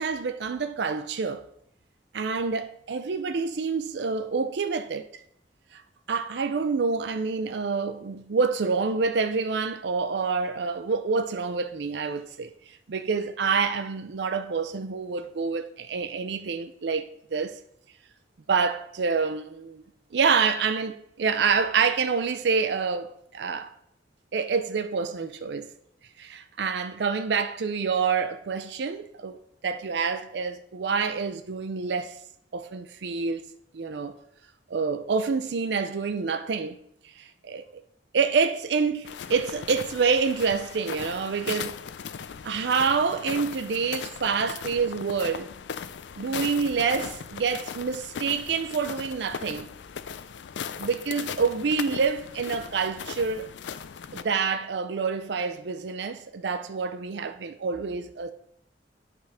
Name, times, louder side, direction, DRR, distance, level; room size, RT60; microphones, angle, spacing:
voice 1, 0.0-1.4 2.1-5.2 5.7-5.8 6.1-17.6 18.5-19.8 20.1-23.7 24.3-25.7 26.2-29.4 29.6-32.2 32.5-33.4 33.7-34.2 34.7-36.8 37.2-37.6 38.1-41.7 42.4-45.5 46.2-49.7 50.8-53.5 54.1-58.3, right 5 dB, 70° right, 0.5 m, -27 dB
sound 1, 39.0-54.2, left 7 dB, 90° left, 0.4 m, -38 dB
9.0 x 3.6 x 5.6 m
head